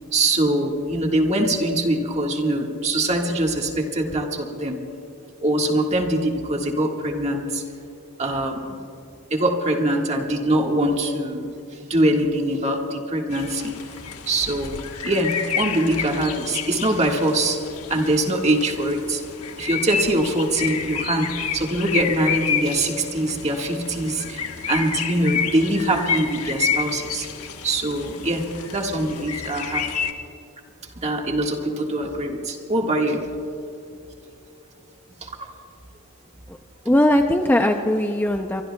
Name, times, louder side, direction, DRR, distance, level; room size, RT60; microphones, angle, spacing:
voice 1, 0.1-4.8 5.4-7.6 8.2-8.8 9.3-11.5 11.8-13.7 14.3-17.6 17.9-19.2 19.6-27.3 27.6-28.5 28.7-29.8 31.0-33.2 35.2-35.3, right 1 dB, 30° right, 1 dB, 1.7 m, -23 dB
sound 1, 13.3-30.1, left 7 dB, 80° left, 1.2 m, -30 dB
voice 2, 36.8-38.6, left 1 dB, 10° left, 5 dB, 0.5 m, -19 dB
24.5 x 23.0 x 2.3 m, 2.7 s
head